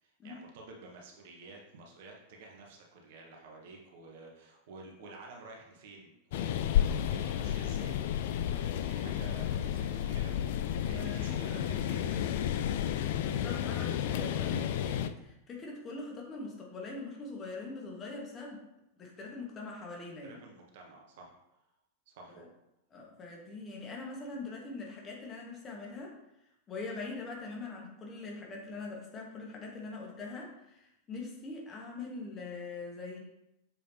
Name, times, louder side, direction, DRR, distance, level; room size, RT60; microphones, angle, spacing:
voice 1, 0.0-12.9 20.2-21.3 22.1-22.5, right 3 dB, 55° right, -1 dB, 1.4 m, -51 dB
sound 1, 6.3-15.1, left 10 dB, 55° left, 0.4 m, -31 dB
voice 2, 10.8-11.3 13.2-18.6 19.0-20.4 22.3-22.4 22.9-26.1 26.7-33.2, left 3 dB, 25° left, -1 dB, 1.6 m, -42 dB
7.3 x 5.1 x 2.9 m, 0.86 s
figure-of-eight pair, 90°, 0 cm